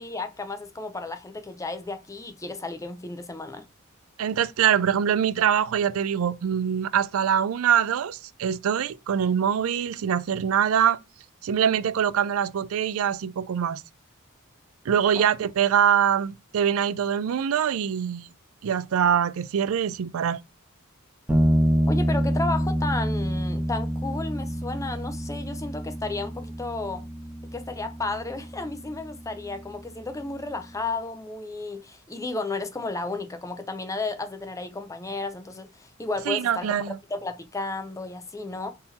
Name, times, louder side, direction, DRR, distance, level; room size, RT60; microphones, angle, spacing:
voice 1, 0.0-3.6 15.2-15.3 21.9-27.0 27.5-36.7 37.1-38.7, left 3 dB, 15° left, 0.5 m, -33 dB
voice 2, 4.2-11.0 11.4-13.8 14.9-18.3 18.6-20.4 36.3-37.0, right 8 dB, 70° right, 0.4 m, -24 dB
sound 1, 21.3-30.8, equal, 10° right, 0.9 m, -28 dB
3.8 x 2.8 x 4.0 m
head